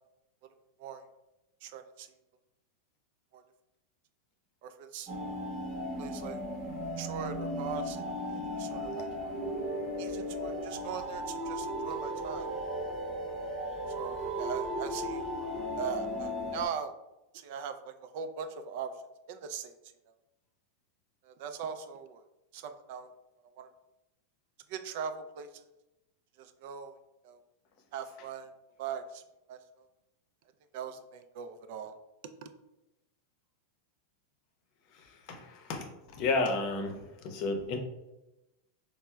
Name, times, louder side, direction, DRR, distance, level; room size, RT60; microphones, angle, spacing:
voice 1, 1.6-2.1 3.3-3.4 4.6-5.1 6.0-6.4 7.0-9.1 10.0-12.5 14.0-15.2 15.8-17.0 17.3-18.9 19.3-19.7 21.2-22.2 22.5-23.1 23.6-23.7 24.7-25.6 26.4-27.0 27.2-27.4 27.9-28.5 28.8-29.2 29.5-29.9 30.7-31.9 32.4-32.5, right 7 dB, 60° right, 9 dB, 0.3 m, -40 dB
sound 1, 5.1-16.7, equal, 30° right, 0.8 m, -36 dB
voice 2, 35.3-36.9 37.2-37.8, left 3 dB, 50° left, 4 dB, 0.6 m, -31 dB
4.2 x 2.0 x 2.3 m, 0.95 s
hypercardioid pair, 120°, 0 cm